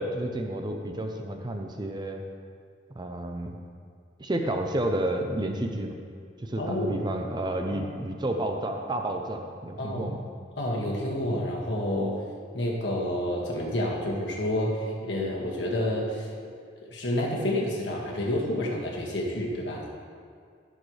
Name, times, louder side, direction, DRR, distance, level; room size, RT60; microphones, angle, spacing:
voice 1, 0.0-2.2 3.0-3.5 4.2-6.0 6.4-10.2, right 1 dB, 25° right, 3 dB, 0.6 m, -30 dB
voice 2, 6.6-7.0 7.7-7.9 9.8-10.1 10.6-12.1 12.5-16.3 16.9-19.8, left 1 dB, 75° left, -3 dB, 1.9 m, -29 dB
15.0 x 6.5 x 3.3 m, 2.2 s
head